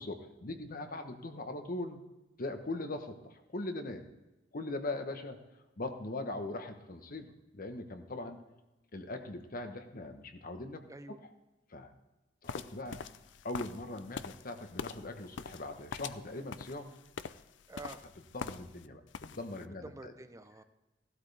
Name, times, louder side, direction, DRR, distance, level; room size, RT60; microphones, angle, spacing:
voice 1, 0.0-2.0 2.4-4.0 4.5-5.4 5.8-8.4 8.9-10.8 11.1-11.2 11.7-11.9 12.4-13.0 13.4-16.9 18.3-20.1, left 2 dB, 50° left, 7 dB, 1.1 m, -40 dB
voice 2, 0.6-1.5 10.9-11.2 17.7-18.1 19.8-20.6, right 2 dB, 15° right, 10 dB, 0.6 m, -49 dB
sound 1, 12.5-18.9 19.1-19.6, left 6 dB, 70° left, 0.5 m, -44 dB
16.0 x 12.5 x 3.4 m, 1.0 s
head